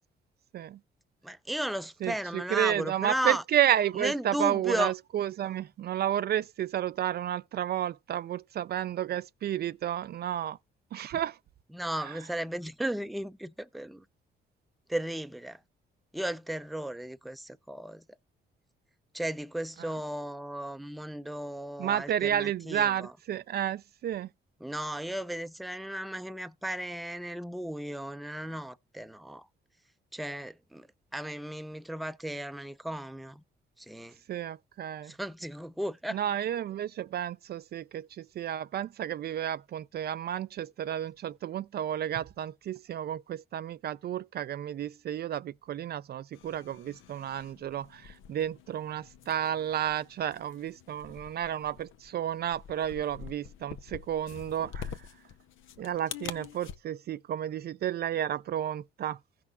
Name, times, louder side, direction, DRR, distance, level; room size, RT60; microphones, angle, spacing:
voice 1, 1.2-3.4 3.9-4.9 11.7-14.1 14.9-15.6 16.1-18.0 19.1-23.1 24.6-29.5 30.1-30.9 31.1-33.4 33.8-34.2 35.0-36.2, right 1 dB, ahead, 0.5 m, -35 dB
voice 2, 2.0-10.6 10.9-11.4 21.8-24.3 34.3-35.1 36.1-54.9 55.8-59.2, right 10 dB, 55° right, 0.4 m, -31 dB
sound 1, 46.3-56.8, left 8 dB, 80° left, 0.8 m, -46 dB
15.5 x 6.0 x 2.3 m
cardioid pair, 90°, 20 cm